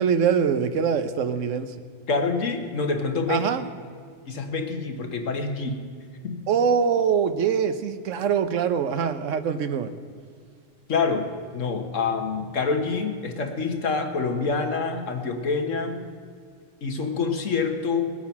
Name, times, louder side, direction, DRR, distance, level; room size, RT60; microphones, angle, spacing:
voice 1, 0.0-1.7 3.3-3.7 6.5-9.9, right 7 dB, 85° right, 10 dB, 1.1 m, -23 dB
voice 2, 2.1-3.5 4.3-5.8 6.2-6.4 10.9-16.1 16.8-18.1, left 4 dB, 85° left, 4 dB, 1.7 m, -26 dB
19.5 x 8.7 x 5.8 m, 2.1 s
omnidirectional pair, 1.3 m